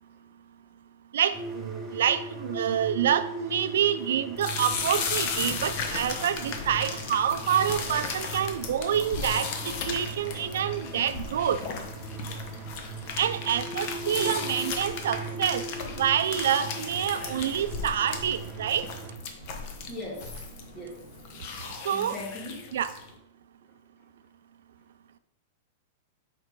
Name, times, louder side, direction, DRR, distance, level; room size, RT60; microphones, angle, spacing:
voice 1, 1.1-11.6 13.2-15.6 16.0-18.9 21.8-22.2 22.7-22.9, right 9 dB, 80° right, 12 dB, 0.4 m, -27 dB
sound 1, 1.3-19.2, right 3 dB, 10° right, 0.8 m, -39 dB
sound 2, 4.4-23.1, left 5 dB, 40° left, 0.9 m, -36 dB
voice 2, 19.9-20.5 20.7-21.1 21.9-22.7, left 1 dB, 20° left, -2 dB, 1.7 m, -39 dB
4.7 x 4.4 x 4.7 m, 0.79 s
supercardioid pair, 160°, 0 cm